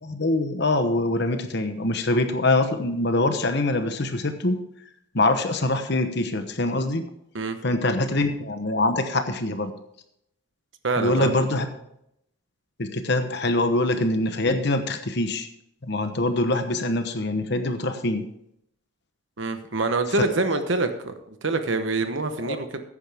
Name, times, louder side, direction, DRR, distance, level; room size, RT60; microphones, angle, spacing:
voice 1, 0.0-4.6 5.1-7.0 7.6-9.7 11.0-11.7 12.8-15.5 15.8-18.2 20.2-20.3 20.5-20.6 22.4-22.6, left 2 dB, 55° left, 8 dB, 1.0 m, -24 dB
voice 2, 10.8-11.3 19.4-21.1 21.4-22.8, right 3 dB, 65° right, 8 dB, 1.0 m, -25 dB
14.5 x 9.9 x 3.5 m, 0.76 s
head